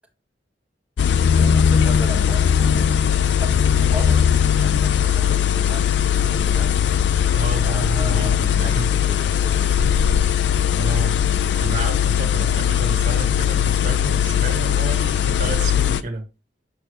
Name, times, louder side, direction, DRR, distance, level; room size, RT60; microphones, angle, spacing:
sound 1, 1.0-16.0, left 8 dB, 70° left, 0.4 m, -19 dB
voice 1, 1.4-6.8 7.6-9.8, left 1 dB, 5° right, 1.6 m, -36 dB
voice 2, 7.3-8.9 10.8-11.2 11.6-16.2, right 2 dB, 45° right, 1.5 m, -30 dB
7.0 x 5.8 x 3.2 m
head